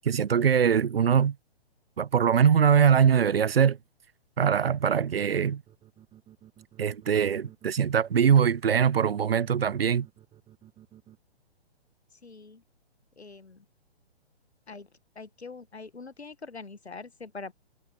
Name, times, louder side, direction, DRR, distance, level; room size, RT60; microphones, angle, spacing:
voice 1, 0.0-1.3 2.0-3.8 4.4-5.6 6.8-10.1, right 7 dB, 65° right, 0.7 m, -22 dB
sound 1, 5.7-11.2, right 11 dB, 15° right, 7.5 m, -53 dB
voice 2, 12.2-12.6 13.2-13.6 14.7-14.9 15.1-17.5, left 4 dB, 80° left, 1.1 m, -43 dB
figure-of-eight pair, 125°, 32 cm